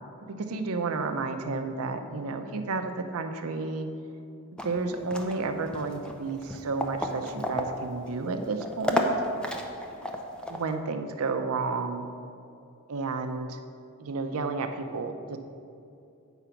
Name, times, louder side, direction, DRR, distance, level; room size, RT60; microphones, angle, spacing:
voice 1, 0.4-3.9 4.6-9.1 10.5-12.1 12.9-13.6 14.0-15.4, right 3 dB, 70° right, 7 dB, 0.6 m, -31 dB
sound 1, 4.6-10.7, left 1 dB, 5° left, 0.6 m, -33 dB
8.0 x 5.0 x 5.7 m, 2.6 s
head